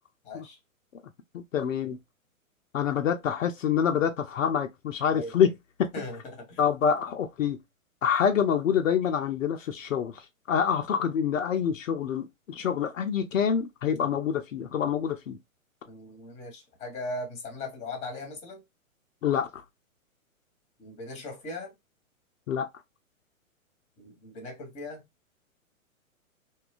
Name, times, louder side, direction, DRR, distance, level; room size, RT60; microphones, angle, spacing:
voice 1, 0.2-0.6 5.1-5.3 5.9-6.6 15.8-18.6 20.8-21.7 24.0-25.0, left 2 dB, 15° left, 1.0 m, -39 dB
voice 2, 1.3-2.0 2.7-5.5 5.8-5.9 6.6-7.6 8.0-15.4 19.2-19.5 22.5-22.7, left 8 dB, 65° left, 0.6 m, -26 dB
2.8 x 2.3 x 2.3 m
figure-of-eight pair, 120°, 42 cm